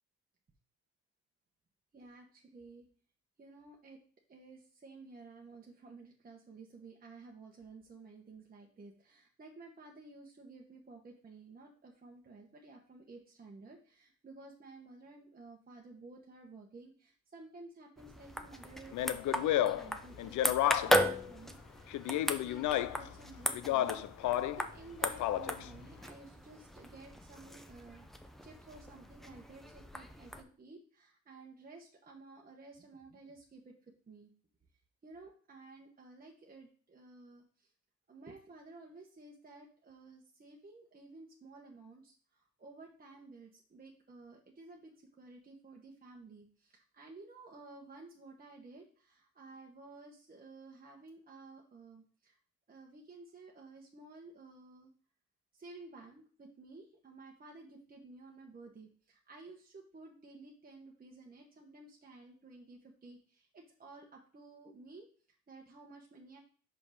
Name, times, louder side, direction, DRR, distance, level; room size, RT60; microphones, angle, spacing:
voice 1, 1.9-2.9 3.4-4.0 4.3-20.6 20.8-34.3 35.0-37.7 38.1-52.4 52.7-54.9 55.5-66.4, right 3 dB, 30° right, 0 dB, 1.1 m, -54 dB
sound 1, 18.0-30.4, equal, ahead, 0.7 m, -37 dB
Speech, 18.9-21.1 21.9-23.1 23.5-24.6 25.0-25.7, left 12 dB, 75° left, 0.5 m, -32 dB
5.5 x 5.2 x 4.9 m, 0.43 s
cardioid pair, 90°, 30 cm